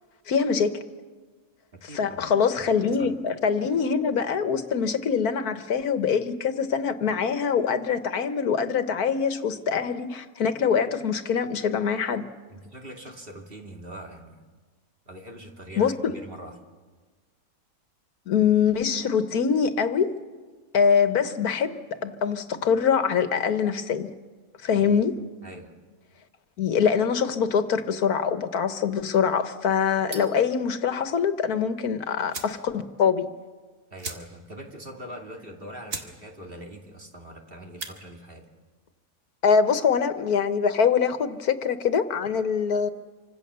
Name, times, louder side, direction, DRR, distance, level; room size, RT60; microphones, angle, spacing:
voice 1, 0.3-0.8 1.9-12.2 15.8-16.1 18.3-20.1 20.7-24.1 24.6-25.2 26.6-33.3 39.4-42.9, left 6 dB, 90° left, 10 dB, 1.7 m, -24 dB
voice 2, 1.8-2.3 3.0-3.1 12.5-14.4 15.1-16.5 24.7-25.0 25.4-25.7 33.9-38.4, right 1 dB, 40° right, 2 dB, 2.7 m, -42 dB
sound 1, 30.1-30.5 31.8-31.9 32.3-32.6 33.0-33.1 33.3-33.5 34.0-34.6 34.9-35.0 35.5-35.6 35.9-36.1 36.5-36.8 37.6-38.0, right 3 dB, 65° right, 2.4 m, -38 dB
27.5 x 25.0 x 6.9 m, 1.4 s
omnidirectional pair, 1.5 m